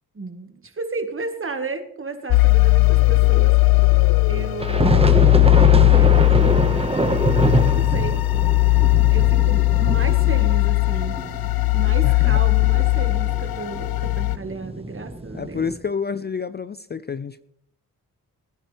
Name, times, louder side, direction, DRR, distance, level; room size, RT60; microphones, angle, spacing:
voice 1, 0.2-3.5 4.3-5.2 5.9-6.7 7.7-8.2 9.1-11.2 11.7-15.6, right 3 dB, 35° right, 7 dB, 1.7 m, -33 dB
sound 1, 2.3-14.4, left 25 dB, 85° left, 0.5 m, -18 dB
sound 2, 4.6-15.7, right 2 dB, 15° right, 1.4 m, -24 dB
voice 2, 12.0-12.4 15.3-17.4, left 6 dB, 30° left, 15 dB, 0.4 m, -29 dB
19.5 x 10.0 x 3.4 m, 0.73 s
cardioid pair, 65°, 35 cm